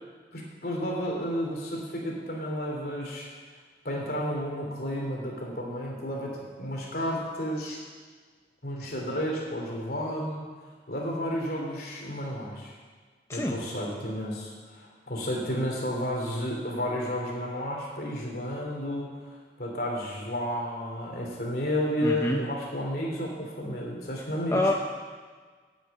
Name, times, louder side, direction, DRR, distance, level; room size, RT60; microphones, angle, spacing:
voice 1, 0.3-3.3 3.8-7.8 8.6-10.5 10.9-12.7 13.3-19.2 19.6-24.6, equal, 55° left, -1 dB, 3.2 m, -32 dB
voice 2, 22.0-22.4 24.5-24.7, left 1 dB, 15° left, 1 dB, 0.6 m, -26 dB
9.1 x 9.0 x 8.8 m, 1.5 s
head